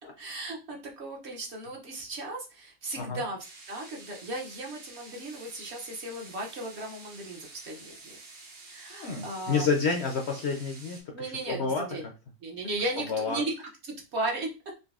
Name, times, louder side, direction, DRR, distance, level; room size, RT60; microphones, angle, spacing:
voice 1, 0.2-3.4 3.7-8.2 8.7-9.7 11.1-12.0 12.4-13.5 14.1-14.5, right 2 dB, 55° right, 0 dB, 0.9 m, -36 dB
sound 1, 3.4-11.0, right 3 dB, 80° right, 1.5 m, -49 dB
voice 2, 8.9-11.9 13.1-13.4, left 5 dB, 65° left, 2 dB, 0.7 m, -29 dB
3.9 x 2.6 x 2.4 m, 0.30 s
omnidirectional pair, 1.5 m